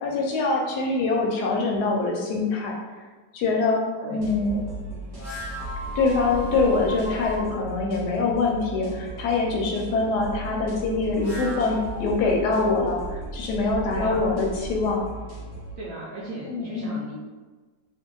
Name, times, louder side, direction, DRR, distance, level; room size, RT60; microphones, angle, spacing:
voice 1, 0.0-2.7 3.3-3.8 4.1-4.6 6.0-15.0 16.5-16.9, left 3 dB, 75° left, -1 dB, 1.1 m, -24 dB
sound 1, 4.2-15.7, right 1 dB, 25° right, 1.1 m, -37 dB
sound 2, 5.1-7.4 11.0-12.7, equal, 30° left, 0.9 m, -37 dB
voice 2, 13.9-14.3 15.8-17.2, right 1 dB, 70° right, -6 dB, 0.8 m, -36 dB
2.7 x 2.5 x 3.7 m, 1.3 s
omnidirectional pair, 1.9 m